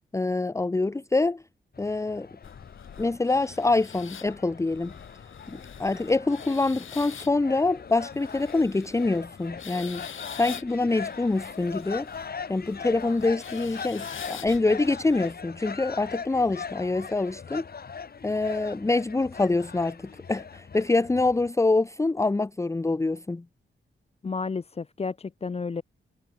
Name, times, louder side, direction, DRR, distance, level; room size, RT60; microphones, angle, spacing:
voice 1, 0.1-1.4 1.8-2.3 3.0-4.9 5.5-10.0 10.4-12.1 12.5-17.7 18.2-23.4, left 3 dB, 15° left, 0.8 m, -25 dB
sound 1, 1.7-21.5, left 6 dB, 50° left, 7.7 m, -41 dB
sound 2, 2.4-15.3, left 8 dB, 75° left, 3.7 m, -45 dB
voice 2, 24.2-25.8, left 4 dB, 30° left, 1.1 m, -31 dB
wide cardioid pair, 165°, 21 cm